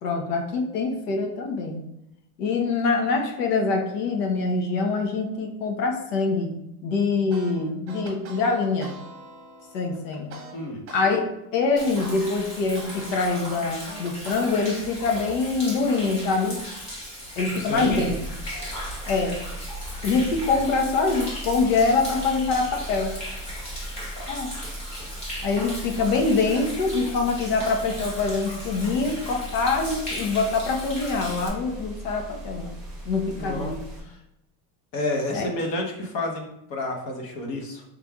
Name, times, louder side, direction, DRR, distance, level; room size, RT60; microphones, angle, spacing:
voice 1, 0.0-1.8 2.4-6.5 6.8-8.9 9.7-10.3 10.9-11.2 11.5-16.6 17.4-18.2 19.1-19.4 20.0-23.1 24.3-24.5 25.4-32.7 33.1-33.8 35.3-35.5, left 4 dB, 80° left, 3 dB, 1.0 m, -24 dB
sound 1, 7.3-11.1 11.4-14.5, right 3 dB, 30° right, 0.9 m, -43 dB
voice 2, 10.5-10.8 17.5-18.0 33.3-33.7 34.0-34.2 34.9-37.8, left 1 dB, 45° left, 1 dB, 0.9 m, -30 dB
Human voice / Rain / Stream, 11.8-31.5, equal, 15° left, 0.3 m, -37 dB
sound 2, 17.7-34.0, right 1 dB, ahead, 1.0 m, -39 dB
5.2 x 3.4 x 2.3 m, 0.85 s
cardioid pair, 175°, 46 cm